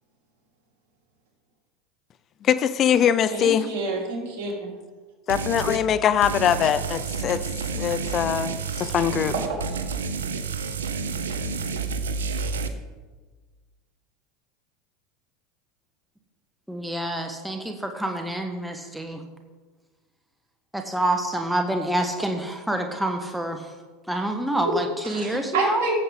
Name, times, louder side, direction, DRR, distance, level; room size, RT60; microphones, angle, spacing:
voice 1, 2.4-3.7 5.3-7.4 7.8-9.3, left 9 dB, 40° left, 14 dB, 0.5 m, -22 dB
voice 2, 3.3-4.7 9.3-9.6 25.0-25.9, right 3 dB, 65° right, -2 dB, 3.7 m, -28 dB
sound 1, 5.3-5.8 6.2-12.7, right 4 dB, 85° right, 0.8 m, -30 dB
voice 3, 16.7-19.2 20.7-23.7 24.1-25.9, right 1 dB, 5° right, 4 dB, 1.1 m, -27 dB
15.5 x 7.8 x 3.7 m, 1.4 s
hypercardioid pair, 90°, 0 cm